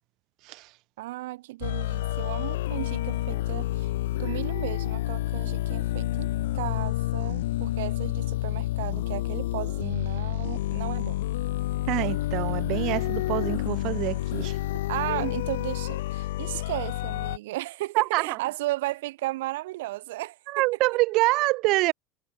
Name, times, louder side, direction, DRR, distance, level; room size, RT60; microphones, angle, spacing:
voice 1, 1.0-6.3 6.5-11.2 14.9-20.6, right 18 dB, 85° right, 7.2 m, -35 dB
sound 1, 1.6-17.4, left 16 dB, 90° left, 1.7 m, -29 dB
voice 2, 11.9-14.6 15.2-15.3 18.0-18.4 20.5-21.9, right 21 dB, 55° right, 3.5 m, -26 dB
supercardioid pair, 125°, 0 cm